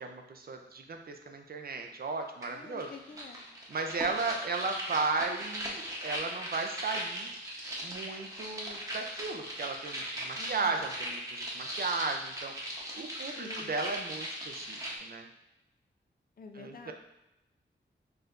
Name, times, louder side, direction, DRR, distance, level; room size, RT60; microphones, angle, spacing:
voice 1, 0.0-2.9 3.7-7.3 7.8-12.5 12.9-15.3 16.5-16.9, right 4 dB, 50° right, 4 dB, 0.5 m, -35 dB
sound 1, 2.4-2.5 2.8-15.0, equal, 15° right, 0.9 m, -39 dB
voice 2, 2.5-3.4 10.4-10.9 13.4-13.8 16.4-16.9, left 4 dB, 50° left, 5 dB, 0.4 m, -48 dB
4.5 x 3.2 x 2.5 m, 0.92 s
wide cardioid pair, 75°, 20 cm